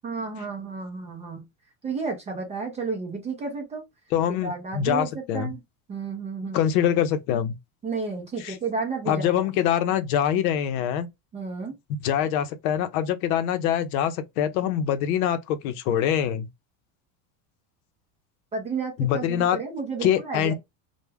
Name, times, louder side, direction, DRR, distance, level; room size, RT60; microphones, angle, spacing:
voice 1, 0.0-1.4 1.8-3.8 4.4-5.1 5.3-5.6 5.9-6.6 7.8-9.4 11.3-11.7 18.5-20.5, right 4 dB, 15° right, 0.4 m, -32 dB
voice 2, 4.1-5.5 6.5-7.5 8.4-8.6 9.1-11.1 12.0-16.5 19.0-19.6 20.0-20.5, left 9 dB, 75° left, 0.6 m, -24 dB
2.2 x 2.1 x 3.2 m
cardioid pair, 160°, 44 cm